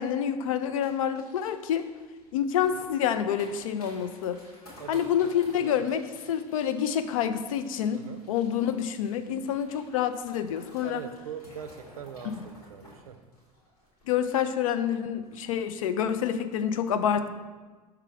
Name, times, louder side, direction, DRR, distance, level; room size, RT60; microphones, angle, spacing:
voice 1, 0.0-1.8 2.3-4.4 4.9-8.0 8.3-11.0 14.1-17.3, left 9 dB, 65° left, 10 dB, 0.4 m, -27 dB
sound 1, 0.8-14.6 14.9-15.0 15.2-15.6 15.9-16.1, equal, 80° left, 1.8 m, -54 dB
voice 2, 5.6-5.9 7.9-8.2 10.8-13.2, right 7 dB, 75° right, 7 dB, 0.5 m, -42 dB
5.7 x 3.6 x 4.6 m, 1.3 s
figure-of-eight pair, 75°, 19 cm